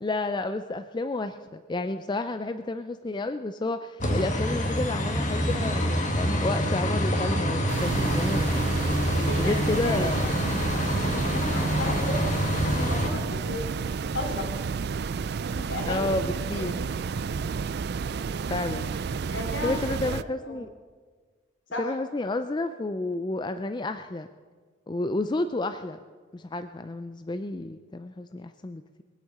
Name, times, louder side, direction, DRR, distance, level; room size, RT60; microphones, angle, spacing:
voice 1, 0.0-8.8 9.4-10.3 15.9-16.8 18.5-18.9 19.6-20.7 21.8-24.3 24.9-26.0 26.3-29.0, left 2 dB, 20° left, 9 dB, 0.4 m, -31 dB
sound 1, 4.0-13.1, equal, 40° left, 1.7 m, -26 dB
sound 2, 7.7-20.2, right 5 dB, 50° right, 0.3 m, -31 dB
voice 2, 9.1-10.1 11.0-12.2 12.7-13.7 14.1-14.5 15.5-16.6 19.3-20.1 20.4-20.6 21.7-21.9, left 1 dB, 70° left, 2 dB, 3.0 m, -34 dB
21.5 x 8.3 x 6.6 m, 1.5 s
head